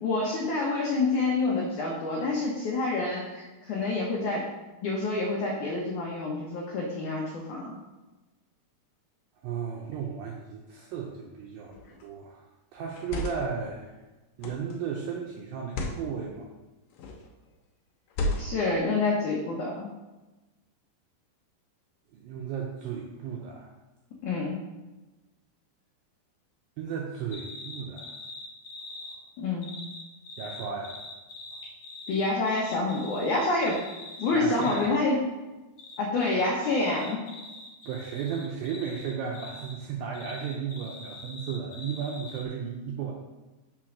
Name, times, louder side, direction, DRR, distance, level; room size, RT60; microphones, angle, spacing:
voice 1, 0.0-4.5 4.8-7.8 18.4-19.9 24.2-24.6 29.4-29.8 32.1-33.8 34.2-35.2 36.0-37.2, left 3 dB, 90° left, -2 dB, 1.7 m, -27 dB
voice 2, 9.4-12.4 12.7-14.0 14.4-16.5 22.1-23.7 26.8-28.1 30.4-31.0 34.3-34.9 37.9-43.1, right 6 dB, 85° right, -1 dB, 2.1 m, -34 dB
sound 1, 11.7-12.0 12.9-13.6 14.4-14.8 15.6-16.0 16.9-17.3 18.1-18.7, left 1 dB, 70° left, 2.1 m, -33 dB
sound 2, 27.3-29.2 29.6-34.9 35.8-39.8 40.1-42.4, left 2 dB, 55° left, 2.4 m, -44 dB
6.0 x 4.6 x 6.2 m, 1.1 s
omnidirectional pair, 4.9 m